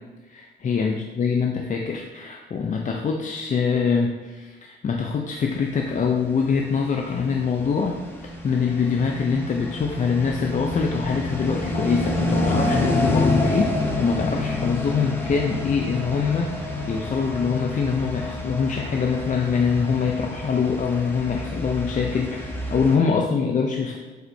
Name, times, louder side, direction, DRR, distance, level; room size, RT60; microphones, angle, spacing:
voice 1, 0.3-8.0 8.4-24.0, left 5 dB, 40° left, 1 dB, 0.6 m, -24 dB
sound 1, 6.3-23.0, left 2 dB, 10° left, 1.1 m, -28 dB
7.8 x 5.0 x 2.7 m, 1.2 s
cardioid pair, 90°, 20 cm